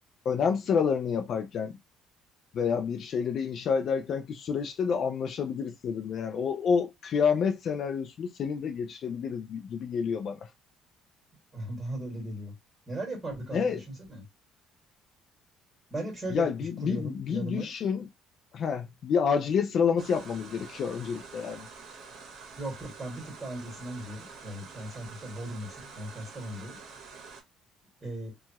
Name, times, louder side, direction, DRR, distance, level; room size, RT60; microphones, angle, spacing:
voice 1, 0.3-1.7 2.5-10.5 13.5-13.8 16.3-18.1 18.5-21.7, left 6 dB, 50° left, 0.3 m, -28 dB
voice 2, 11.5-12.5 12.9-14.2 15.9-17.7 22.5-26.8 28.0-28.3, right 1 dB, 15° right, 1.7 m, -37 dB
sound 1, 20.0-27.4, right 5 dB, 55° right, 0.9 m, -47 dB
2.7 x 2.4 x 2.8 m
cardioid pair, 140°, 0 cm